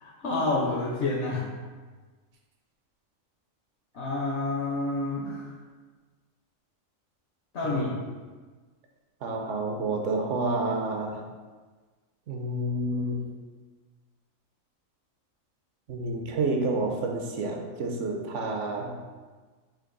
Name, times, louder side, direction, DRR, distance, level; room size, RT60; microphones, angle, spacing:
voice 1, 0.0-1.4 3.9-5.5 7.5-7.9, left 2 dB, 60° left, -3 dB, 0.9 m, -28 dB
voice 2, 9.2-11.2 12.3-13.2 15.9-19.0, right 2 dB, 70° right, 2 dB, 0.9 m, -29 dB
4.5 x 2.7 x 3.8 m, 1.4 s
omnidirectional pair, 1.4 m